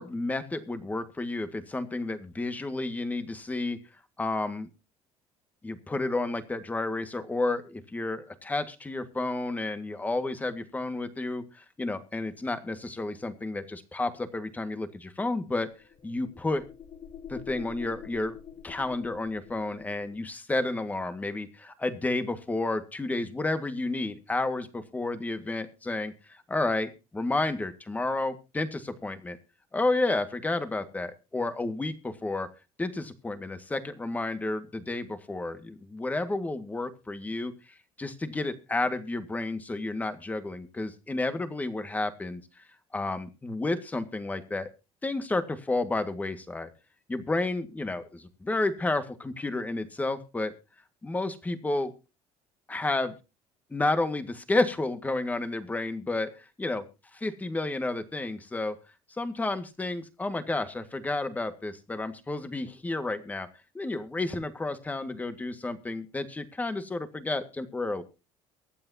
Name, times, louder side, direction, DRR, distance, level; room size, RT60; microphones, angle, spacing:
voice 1, 0.0-3.8 4.2-4.7 5.6-15.7 16.0-16.6 17.3-18.4 18.6-29.4 29.7-32.5 32.8-37.5 38.0-42.4 42.9-44.7 45.0-46.7 47.1-50.5 51.0-51.9 52.7-53.2 53.7-56.8 57.1-58.7 59.1-63.5 63.7-68.0, left 2 dB, 15° left, 9 dB, 1.8 m, -31 dB
sound 1, 15.5-20.3, left 8 dB, 40° left, 1.1 m, -46 dB
23.5 x 8.9 x 2.8 m, 0.29 s
cardioid pair, 115°, 11 cm